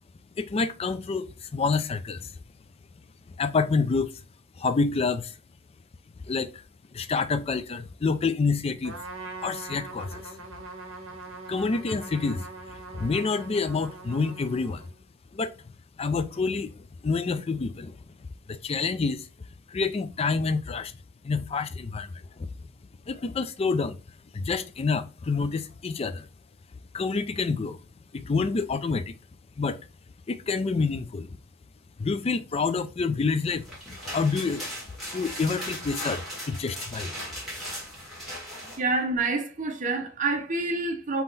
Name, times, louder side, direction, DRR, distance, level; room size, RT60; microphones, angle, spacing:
voice 1, 0.4-2.4 3.4-4.1 4.6-5.4 6.3-6.6 6.9-9.0 9.4-10.3 11.5-14.9 15.3-15.5 16.0-16.7 17.0-18.0 18.5-19.3 19.7-20.9 21.2-22.1 23.1-24.0 24.3-26.3 26.9-27.8 28.1-29.2 29.6-29.8 30.3-31.4 32.0-34.7 35.1-37.1, left 4 dB, 30° left, 0.3 m, -28 dB
Trumpet, 8.8-15.0, right 3 dB, 75° right, 0.8 m, -42 dB
sound 1, 33.5-38.8, equal, ahead, 1.7 m, -38 dB
voice 2, 38.8-41.2, right 3 dB, 35° right, 0.8 m, -27 dB
3.7 x 2.9 x 4.0 m
head